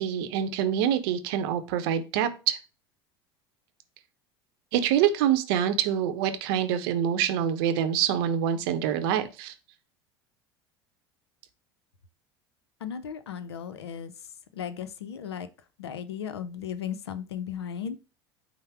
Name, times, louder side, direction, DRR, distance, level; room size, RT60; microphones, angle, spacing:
voice 1, 0.0-2.6 4.7-9.5, right 9 dB, 65° right, 9 dB, 0.7 m, -26 dB
voice 2, 12.8-14.1 14.5-15.5 15.8-18.0, left 8 dB, 80° left, 13 dB, 0.5 m, -36 dB
5.5 x 2.0 x 4.7 m, 0.31 s
hypercardioid pair, 75°, 13 cm